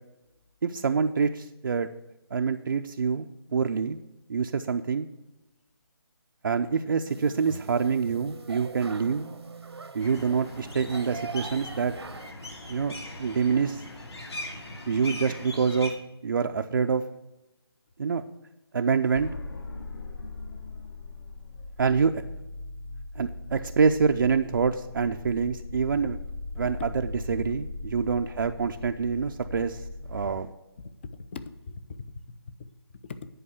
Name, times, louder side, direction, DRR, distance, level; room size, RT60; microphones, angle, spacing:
voice 1, 0.6-1.9 2.3-4.0 4.3-5.1 6.4-9.3 9.9-11.9 12.7-12.9 13.2-13.8 14.9-16.0 16.2-17.0 18.0-18.2 18.7-19.3 21.8-22.2 23.2-26.2 26.6-26.9 27.3-30.5, right 5 dB, 55° right, 5 dB, 0.5 m, -26 dB
sound 1, 7.1-12.3, right 4 dB, 80° right, 1.1 m, -43 dB
sound 2, 10.0-15.9, left 1 dB, 80° left, 2.6 m, -40 dB
sound 3, 19.1-30.4, left 3 dB, 55° left, 1.2 m, -39 dB
voice 2, 30.8-32.1 33.0-33.3, left 4 dB, 25° left, 13 dB, 0.5 m, -40 dB
10.0 x 4.7 x 7.9 m, 0.99 s
figure-of-eight pair, 160°, 13 cm